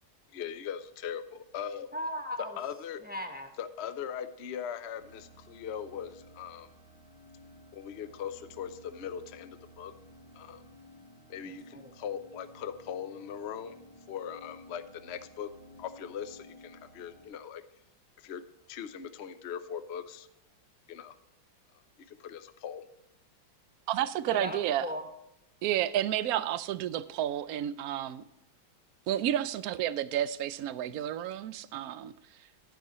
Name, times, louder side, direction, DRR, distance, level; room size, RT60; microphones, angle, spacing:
voice 1, 0.3-1.9 2.6-3.0 3.6-6.7 7.7-9.9 10.3-10.6 11.3-13.8 14.1-15.5 15.8-17.6 18.2-18.4 18.7-20.3 20.9-21.1 22.1-22.8, left 8 dB, 60° left, 11 dB, 0.7 m, -40 dB
voice 2, 1.9-2.6 3.0-3.5 11.4-11.9 24.2-25.1, left 1 dB, 10° right, 4 dB, 0.6 m, -38 dB
sound 1, 4.9-17.3, equal, 85° left, 3.3 m, -55 dB
voice 3, 23.9-24.9 25.6-28.2 29.1-32.1, right 11 dB, 70° right, 15 dB, 0.9 m, -31 dB
11.5 x 11.5 x 3.1 m, 0.86 s
omnidirectional pair, 2.1 m